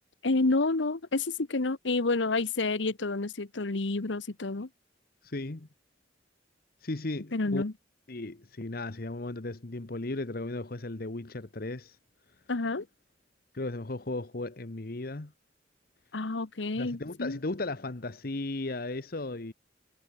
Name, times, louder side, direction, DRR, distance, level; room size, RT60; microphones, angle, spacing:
voice 1, 0.2-4.7 7.3-7.7 12.5-12.9 16.1-17.4, left 3 dB, 85° left, 1.1 m, -29 dB
voice 2, 5.2-5.7 6.8-7.6 8.1-12.0 13.5-15.3 16.7-19.5, left 2 dB, 55° left, 1.1 m, -36 dB
head